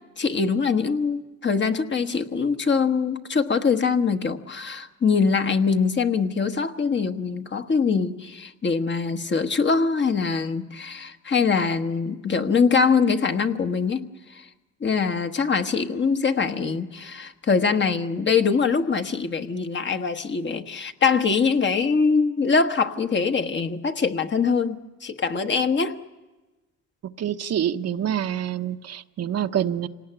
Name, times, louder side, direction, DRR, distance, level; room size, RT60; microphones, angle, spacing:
voice 1, 0.2-14.5 14.8-26.0, left 5 dB, 40° left, 6 dB, 1.3 m, -23 dB
voice 2, 27.2-29.9, right 10 dB, 55° right, 8 dB, 0.9 m, -26 dB
26.0 x 18.5 x 8.9 m, 1.2 s
cardioid pair, 90°, 30 cm